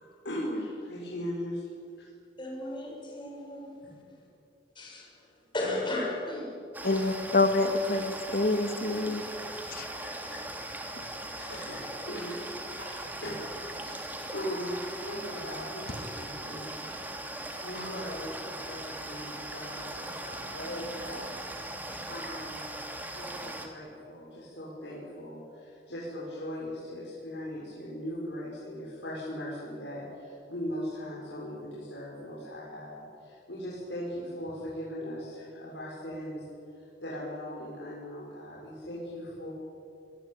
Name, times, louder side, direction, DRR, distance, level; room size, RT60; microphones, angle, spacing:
voice 1, 0.0-1.6 2.0-2.1 3.8-3.9 9.7-10.4 11.4-13.4 13.8-16.8 17.2-22.7 23.1-39.5, equal, 85° left, -6 dB, 6.7 m, -39 dB
voice 2, 2.4-3.7 4.8-5.1 5.5-6.6 6.8-7.1, left 1 dB, 30° left, -2 dB, 7.3 m, -34 dB
sound 1, 6.7-23.7, right 1 dB, 10° right, 2.9 m, -39 dB
voice 3, 6.8-9.2 9.7-9.9 11.0-11.1, left 2 dB, 55° left, 8 dB, 2.2 m, -27 dB
27.5 x 23.0 x 9.0 m, 2.5 s
head